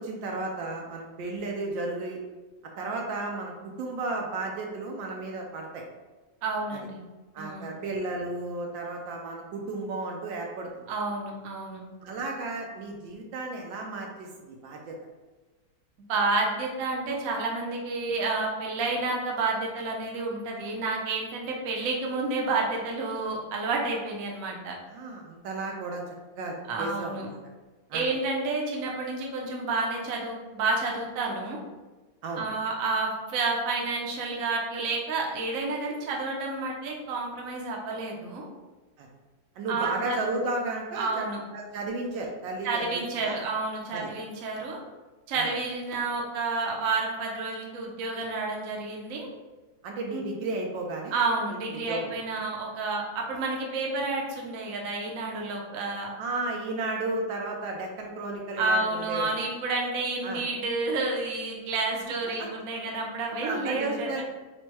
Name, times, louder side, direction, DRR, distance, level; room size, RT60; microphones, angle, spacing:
voice 1, 0.0-2.2 2.8-5.8 6.7-6.8 7.3-10.9 12.0-15.0 24.9-27.4 27.9-28.1 32.2-32.5 39.0-39.1 39.6-41.2 41.5-43.4 43.9-44.1 45.3-45.5 49.8-51.2 51.5-52.2 56.2-59.3 60.2-60.4 62.4-62.5 63.4-64.2, right 2 dB, 75° right, 1 dB, 1.3 m, -33 dB
voice 2, 6.4-7.0 7.4-7.7 10.9-11.8 16.1-24.7 26.7-27.3 27.9-31.6 32.4-38.5 39.7-40.2 41.0-41.4 42.6-44.8 45.3-49.3 50.1-50.2 51.1-56.1 58.6-64.2, right 3 dB, 60° right, -1 dB, 0.9 m, -30 dB
4.3 x 2.2 x 4.5 m, 1.2 s
omnidirectional pair, 2.2 m